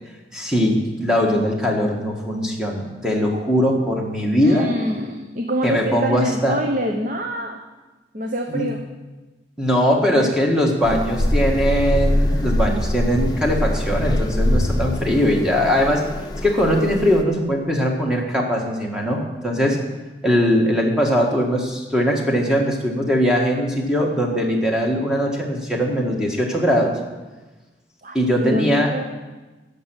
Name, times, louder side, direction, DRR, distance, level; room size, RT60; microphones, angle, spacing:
voice 1, 0.3-4.7 5.6-6.6 8.5-8.7 9.6-16.1 16.4-19.8 20.2-27.0 28.1-29.0, equal, 5° right, -1 dB, 1.6 m, -20 dB
voice 2, 4.4-7.6 8.1-8.8 12.1-12.3 28.0-29.0, equal, 45° right, 3 dB, 0.9 m, -25 dB
sound 1, 10.8-17.2, left 1 dB, 20° left, 0.8 m, -23 dB
11.0 x 6.7 x 9.1 m, 1.2 s
head